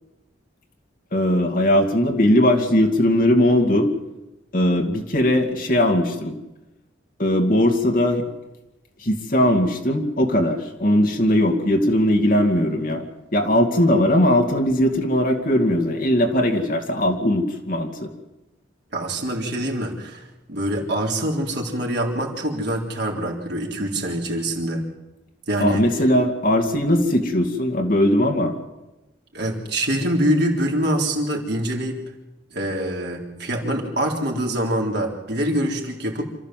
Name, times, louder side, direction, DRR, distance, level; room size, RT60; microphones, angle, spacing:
voice 1, 1.1-3.9 4.5-6.4 7.2-8.2 9.0-13.1 13.3-18.1 25.6-28.5, left 1 dB, 45° left, 4 dB, 2.3 m, -19 dB
voice 2, 18.9-20.2 20.5-24.8 25.5-25.8 29.3-32.0 32.5-36.2, right 1 dB, 55° right, 0 dB, 3.7 m, -24 dB
27.0 x 14.0 x 7.6 m, 1.0 s
head